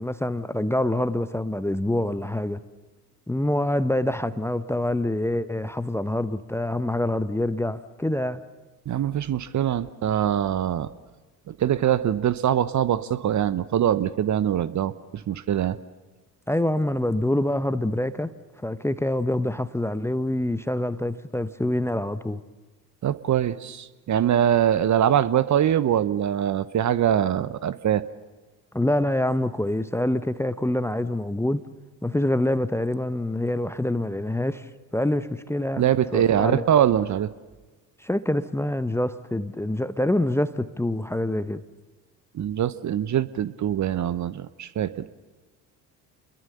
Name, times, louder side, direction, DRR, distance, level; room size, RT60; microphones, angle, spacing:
voice 1, 0.0-2.6 3.3-8.4 16.5-18.3 18.6-22.4 28.7-31.6 32.0-34.7 34.9-35.8 36.1-36.7 38.0-41.6, left 1 dB, 5° left, 0.9 m, -26 dB
voice 2, 8.9-10.9 11.5-14.9 15.3-15.8 23.0-28.0 35.8-37.3 42.3-45.0, right 10 dB, 35° right, 1.0 m, -23 dB
29.0 x 22.0 x 6.8 m
figure-of-eight pair, 55°, 48 cm